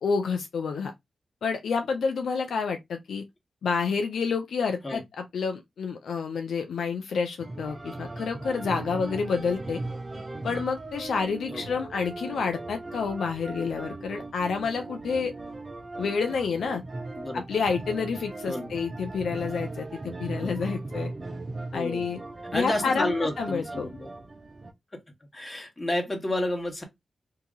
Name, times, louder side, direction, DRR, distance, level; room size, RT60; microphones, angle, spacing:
voice 1, 0.0-0.9 1.4-3.2 3.6-9.8 10.4-15.3 16.0-16.8 17.3-21.1 21.7-22.2 22.5-23.9, left 5 dB, 90° left, 0.5 m, -29 dB
sound 1, 7.4-24.7, right 2 dB, 40° right, 0.7 m, -38 dB
voice 2, 18.5-18.8 20.4-20.5 21.7-22.2 22.5-24.1 25.3-26.8, left 1 dB, 25° left, 1.4 m, -31 dB
2.8 x 2.7 x 3.6 m
cardioid pair, 65°, 0 cm